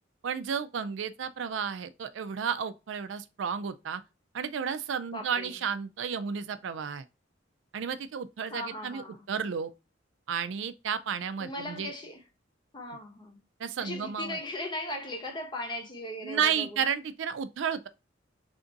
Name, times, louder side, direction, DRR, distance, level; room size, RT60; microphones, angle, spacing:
voice 1, 0.2-4.0 4.3-7.0 7.7-9.7 10.3-11.9 13.6-14.4 16.2-17.9, right 7 dB, 70° right, 0.4 m, -32 dB
voice 2, 5.1-5.5 8.5-9.2 11.4-12.2 12.7-13.4 13.8-16.8, left 1 dB, 25° left, 0.8 m, -38 dB
3.4 x 2.6 x 3.8 m
head